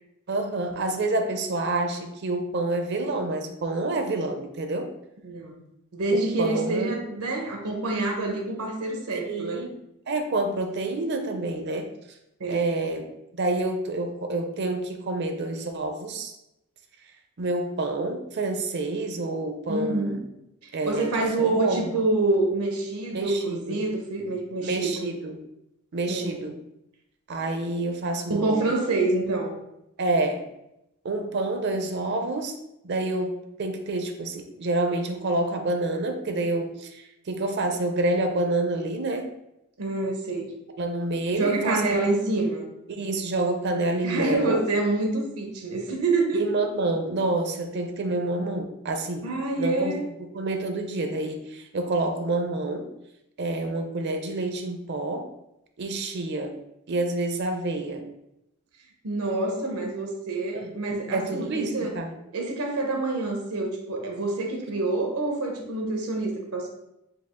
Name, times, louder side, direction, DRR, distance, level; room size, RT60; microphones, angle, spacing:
voice 1, 0.3-4.9 6.4-6.9 9.1-9.7 10.1-11.9 12.4-13.0 13.3-16.3 17.4-20.2 20.7-21.1 21.4-21.9 23.1-23.9 24.6-25.4 25.9-26.6 27.3-28.8 30.0-30.5 31.0-32.6 32.8-39.3 40.8-42.0 42.9-44.6 46.3-49.3 49.6-49.9 50.3-52.9 53.4-55.3 55.8-56.6 56.9-58.1 60.5-60.7 61.1-62.1, right 2 dB, 50° right, 6 dB, 0.5 m, -28 dB
voice 2, 5.2-5.6 5.9-9.7 12.4-12.7 19.7-20.2 20.6-25.1 26.1-26.4 28.3-29.6 39.8-40.5 41.3-42.7 44.0-46.5 49.2-50.0 59.0-61.9 62.3-66.7, right 2 dB, 85° right, 2 dB, 0.8 m, -27 dB
4.8 x 2.4 x 3.6 m, 0.85 s
head